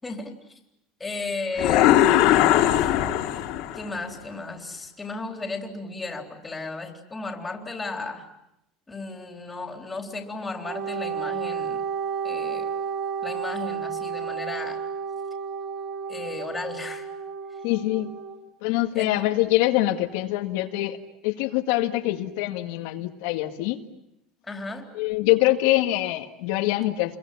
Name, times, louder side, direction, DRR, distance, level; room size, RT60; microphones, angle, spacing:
voice 1, 0.0-0.6 1.0-1.9 2.8-2.9 3.7-8.3 8.9-11.8 12.2-12.7 13.2-14.8 16.1-17.1 18.9-19.1 24.4-24.9, left 3 dB, 10° left, 3 dB, 3.8 m, -34 dB
sound 1, 1.6-3.9, left 13 dB, 60° left, 2.9 m, -19 dB
Wind instrument woodwind instrument, 10.6-18.4, right 6 dB, 40° right, 6.1 m, -32 dB
voice 2, 17.6-18.1 18.6-21.0 21.2-23.8 24.9-27.2, left 16 dB, 80° left, 4 dB, 1.9 m, -24 dB
29.5 x 22.5 x 8.7 m, 0.83 s
cardioid pair, 145°, 0 cm